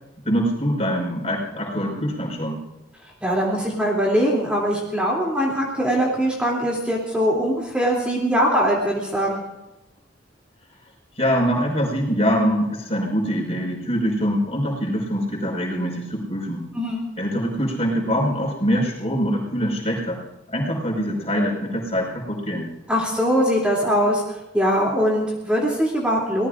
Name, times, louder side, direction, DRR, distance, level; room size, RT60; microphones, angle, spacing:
voice 1, 0.2-2.6 11.2-16.7 17.2-20.2 20.5-22.7, equal, 35° left, -1 dB, 5.3 m, -24 dB
voice 2, 3.2-9.4 16.7-17.0 22.9-24.2 24.5-26.5, equal, 5° right, -3 dB, 2.9 m, -21 dB
25.0 x 19.0 x 2.6 m, 0.94 s
head